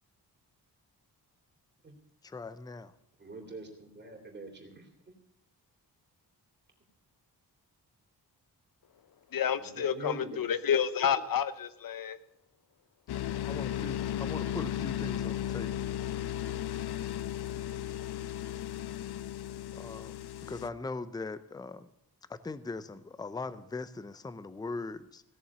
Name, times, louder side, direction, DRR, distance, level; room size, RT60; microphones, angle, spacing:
voice 1, 2.2-2.9 13.4-15.7 19.7-20.1 20.4-21.9 22.3-25.2, left 3 dB, 10° left, 15 dB, 0.5 m, -40 dB
voice 2, 3.2-4.9 9.8-10.4, right 3 dB, 25° right, 2 dB, 3.0 m, -43 dB
voice 3, 9.3-12.2, left 8 dB, 60° left, 14 dB, 0.9 m, -29 dB
sound 1, 13.1-20.7, left 11 dB, 75° left, 0.6 m, -35 dB
17.0 x 7.0 x 8.5 m, 0.76 s
wide cardioid pair, 180°, 40 cm